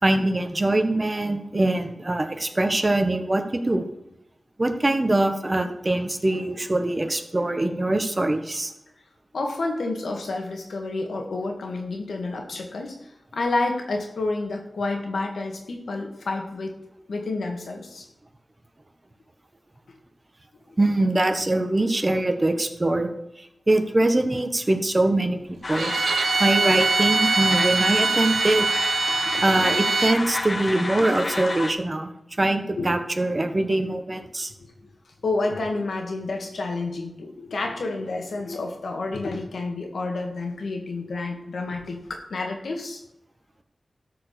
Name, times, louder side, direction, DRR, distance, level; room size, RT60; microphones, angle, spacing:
voice 1, 0.0-3.8 4.6-8.7 20.8-23.1 23.4-25.9 26.4-28.7 29.4-32.1 32.4-34.5, right 2 dB, 30° right, 7 dB, 1.3 m, -23 dB
voice 2, 9.3-13.0 13.3-16.8 17.1-18.1 29.1-29.7 32.8-32.9 34.6-34.7 35.2-43.0, left 3 dB, 85° left, 3 dB, 1.9 m, -29 dB
sound 1, 25.6-31.7, left 2 dB, 45° left, 0.8 m, -30 dB
Bowed string instrument, 25.7-30.2, right 4 dB, 90° right, 0.6 m, -23 dB
13.0 x 5.1 x 6.9 m, 0.85 s
wide cardioid pair, 65°, 0 cm